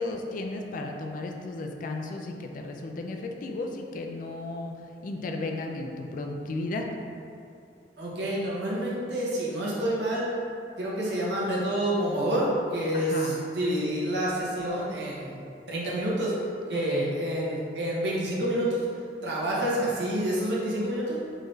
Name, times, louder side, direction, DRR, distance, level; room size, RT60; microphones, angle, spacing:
voice 1, 0.0-4.8 5.0-6.9 12.9-13.4 16.7-17.1, left 2 dB, 50° left, 3 dB, 0.3 m, -34 dB
voice 2, 8.0-10.3 10.8-15.4 15.7-16.3 16.7-18.9 19.2-21.2, right 1 dB, 70° right, -6 dB, 0.9 m, -28 dB
3.8 x 2.6 x 3.2 m, 2.5 s
head